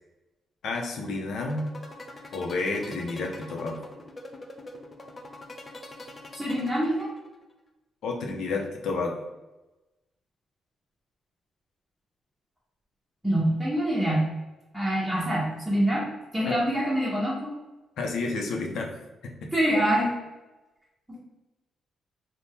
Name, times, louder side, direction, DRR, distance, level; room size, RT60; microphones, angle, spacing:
voice 1, 0.6-1.7 2.3-3.8 8.0-9.2 16.4-16.5 18.0-18.9 19.2-19.5, left 3 dB, 80° left, 1 dB, 0.6 m, -30 dB
sound 1, 1.4-7.4, left 2 dB, 30° left, 0.4 m, -43 dB
voice 2, 6.3-7.1 13.2-14.3 14.7-16.1 16.3-17.5 19.5-20.1, right 1 dB, 10° right, -8 dB, 0.9 m, -25 dB
2.7 x 2.1 x 3.4 m, 1.1 s
cardioid pair, 95°, 0 cm